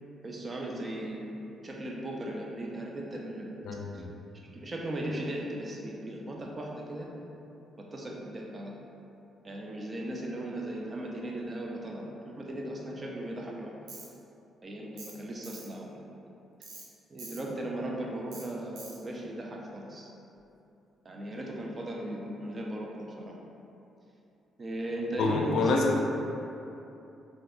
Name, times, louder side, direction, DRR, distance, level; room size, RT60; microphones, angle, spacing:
voice 1, 0.2-1.3 1.6-3.5 3.9-4.0 4.5-7.1 7.9-8.7 9.4-13.7 14.6-15.9 17.1-20.1 21.0-23.4 24.6-25.8, right 1 dB, 35° right, -1 dB, 0.5 m, -37 dB
voice 2, 3.6-4.1 25.2-26.0, left 3 dB, 75° left, 0 dB, 0.4 m, -27 dB
Tools, 13.9-14.1 15.0-15.2 15.4-15.7 16.6-16.9 17.2-17.4 18.3-18.5 18.8-19.0, right 3 dB, 85° right, 0.6 m, -45 dB
3.3 x 2.6 x 2.5 m, 2.8 s
cardioid pair, 90°, 0 cm